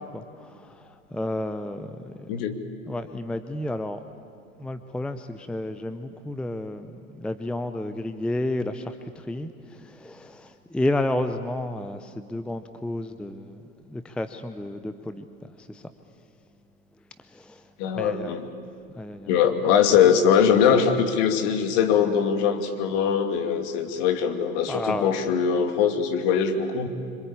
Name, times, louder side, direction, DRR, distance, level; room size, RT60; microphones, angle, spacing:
voice 1, 0.0-2.1 2.9-4.0 4.6-13.6 13.9-15.2 15.6-15.9 17.3-17.6 17.9-18.4 19.0-19.4 24.7-25.2, left 1 dB, ahead, 10 dB, 0.7 m, -31 dB
voice 2, 2.3-2.6 17.8-18.5 19.3-26.9, left 7 dB, 45° left, 6 dB, 2.7 m, -22 dB
26.5 x 25.5 x 8.6 m, 2.5 s
figure-of-eight pair, 95°, 42 cm